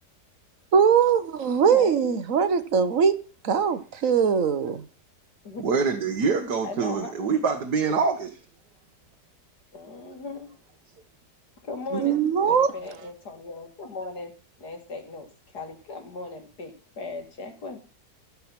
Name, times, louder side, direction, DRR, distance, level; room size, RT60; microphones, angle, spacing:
voice 1, 0.7-3.1 3.4-4.8 11.9-12.7, right 6 dB, 55° right, 1.3 m, -21 dB
voice 2, 1.7-2.1 5.4-6.0 6.6-7.6 9.7-10.5 11.6-12.2 12.5-14.3 14.6-15.3 15.5-17.8, left 3 dB, 70° left, 2.8 m, -38 dB
voice 3, 5.6-8.4, right 5 dB, 70° right, 1.8 m, -25 dB
14.0 x 7.3 x 5.9 m
omnidirectional pair, 1.8 m